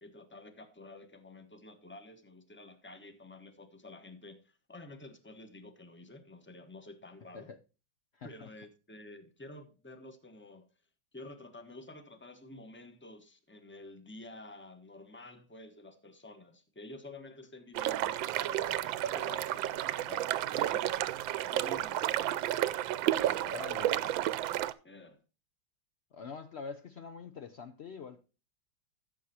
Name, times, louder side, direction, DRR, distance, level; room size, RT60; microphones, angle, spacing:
voice 1, 0.0-7.5 8.2-10.7 11.1-21.1 21.5-22.5 23.2-24.3 24.8-25.2, left 2 dB, 10° left, 0.8 m, -50 dB
voice 2, 8.1-8.5 23.4-24.1 26.1-28.2, left 5 dB, 80° left, 0.5 m, -45 dB
sound 1, 17.7-24.7, right 13 dB, 85° right, 1.4 m, -31 dB
14.5 x 7.4 x 2.8 m
omnidirectional pair, 2.1 m